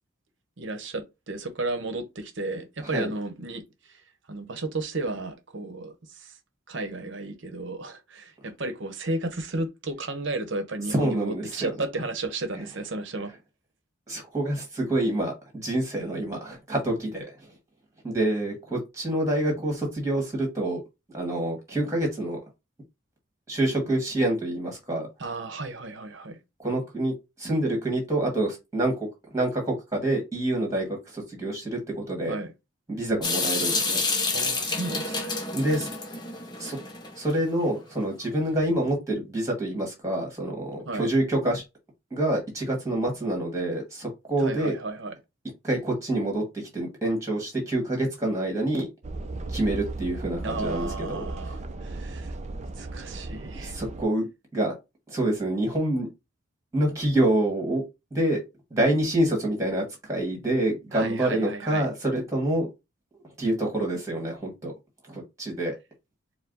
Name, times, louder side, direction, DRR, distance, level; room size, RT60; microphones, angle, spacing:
voice 1, 0.6-3.6 4.3-6.3 6.7-13.3 25.2-26.4 32.3-32.5 34.3-35.3 40.9-41.1 44.4-45.1 50.4-52.3 52.8-53.7 60.9-61.9, right 2 dB, 60° right, 0.8 m, -33 dB
voice 2, 10.9-11.7 14.1-17.3 18.0-20.8 21.1-22.4 23.5-25.1 26.6-28.9 29.3-32.4 32.9-34.0 35.5-35.9 36.6-36.8 37.2-41.6 42.1-44.7 45.6-46.4 46.7-48.9 49.5-51.2 53.6-54.3 54.5-54.7 55.1-56.1 56.7-57.8 58.1-58.4 58.7-62.7 63.4-64.7 65.1-65.7, right 1 dB, 15° right, 1.6 m, -27 dB
Water tap faucet / Sink (filling or washing) / Drip, 33.2-37.3, left 3 dB, 20° left, 0.6 m, -29 dB
sound 1, 49.0-54.0, right 2 dB, 35° right, 0.4 m, -36 dB
4.6 x 2.1 x 3.9 m
head